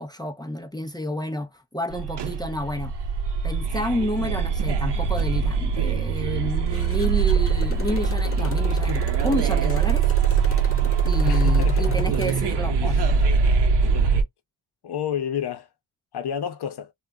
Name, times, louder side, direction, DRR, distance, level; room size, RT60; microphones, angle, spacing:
voice 1, 0.0-2.9 3.4-10.1 11.0-13.1, left 1 dB, 10° left, 0.5 m, -30 dB
sound 1, 1.9-14.2, right 5 dB, 55° right, 0.8 m, -22 dB
Motorcycle, 6.7-12.5, left 3 dB, 30° left, 1.1 m, -38 dB
voice 2, 11.2-12.0 12.8-13.0 14.8-15.7 16.1-16.9, left 8 dB, 55° left, 0.8 m, -29 dB
2.4 x 2.1 x 3.5 m
cardioid pair, 75°, 48 cm